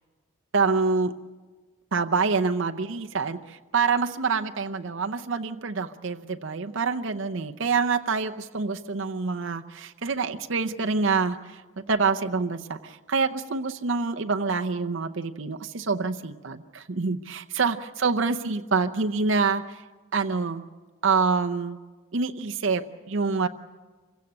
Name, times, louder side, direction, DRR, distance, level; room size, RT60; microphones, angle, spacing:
voice 1, 0.5-1.2 1.9-19.8 20.1-20.6 21.0-21.8 22.1-23.5, right 4 dB, 70° right, 5 dB, 0.7 m, -26 dB
26.0 x 16.5 x 8.6 m, 1.4 s
head